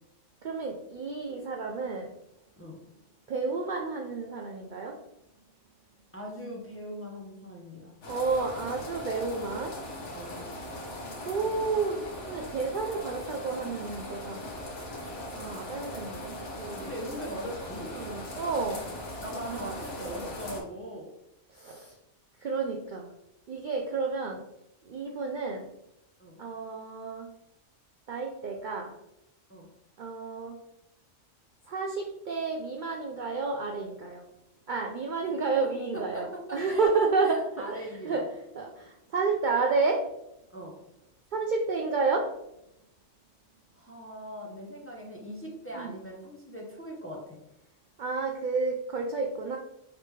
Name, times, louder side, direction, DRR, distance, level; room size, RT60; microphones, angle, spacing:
voice 1, 0.4-2.1 3.3-5.0 8.1-9.7 10.5-10.8 11.2-14.4 15.3-16.9 17.9-18.8 19.4-19.7 21.5-21.9 22.4-23.1 23.5-24.4 24.9-25.7 26.4-27.3 28.1-28.9 30.0-30.6 31.7-34.2 34.7-37.4 37.7-38.2 38.6-40.1 41.3-42.3 45.7-45.9 48.0-49.6, right 4 dB, 60° right, 1 dB, 0.5 m, -31 dB
voice 2, 6.1-7.9 10.1-10.5 16.8-17.9 19.2-21.1 26.2-26.4 29.5-29.7 35.9-36.9 37.2-38.2 40.5-40.8 43.7-47.4, equal, 15° left, -2 dB, 0.7 m, -40 dB
sound 1, 8.0-20.6, left 1 dB, 70° left, 1.4 m, -40 dB
4.9 x 3.3 x 3.1 m, 0.85 s
omnidirectional pair, 1.2 m